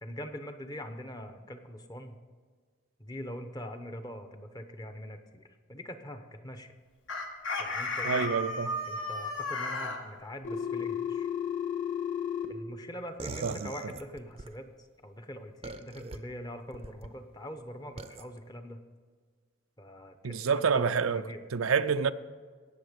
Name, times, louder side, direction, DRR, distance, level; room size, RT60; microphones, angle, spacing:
voice 1, 0.0-2.2 3.0-6.7 7.6-8.2 8.9-11.3 12.5-14.7 15.0-18.8 19.8-21.4, equal, 20° left, 0.8 m, -43 dB
Chicken rooster, 7.1-10.0, left 2 dB, 65° left, 1.6 m, -33 dB
voice 2, 8.0-8.8 13.4-13.9 20.2-22.1, right 6 dB, 90° right, 0.5 m, -28 dB
Telephone, 10.4-12.4, left 8 dB, 40° left, 1.6 m, -32 dB
sound 1, 13.2-14.5 15.6-16.2 16.7-17.1 18.0-18.2, right 3 dB, 30° right, 0.6 m, -41 dB
18.0 x 7.0 x 5.2 m
head